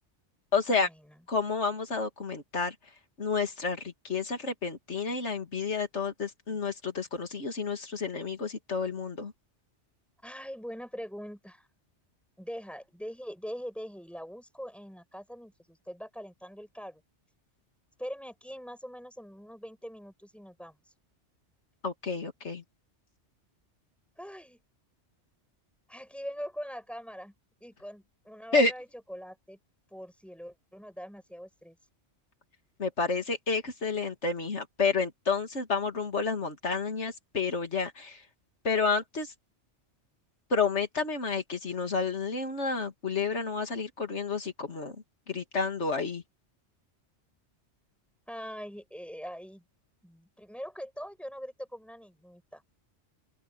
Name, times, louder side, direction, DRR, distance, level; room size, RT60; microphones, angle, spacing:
voice 1, 0.5-0.9 1.3-2.7 3.2-9.3 21.8-22.6 28.5-28.7 32.8-38.2 38.6-39.3 40.5-45.0 45.3-46.2, left 4 dB, 75° left, 2.7 m, -30 dB
voice 2, 10.2-11.7 12.4-17.0 18.0-20.8 24.2-24.6 25.9-27.3 27.6-29.6 29.9-31.8 48.3-49.6 50.0-52.6, equal, ahead, 7.6 m, -42 dB
open air
omnidirectional pair, 1.2 m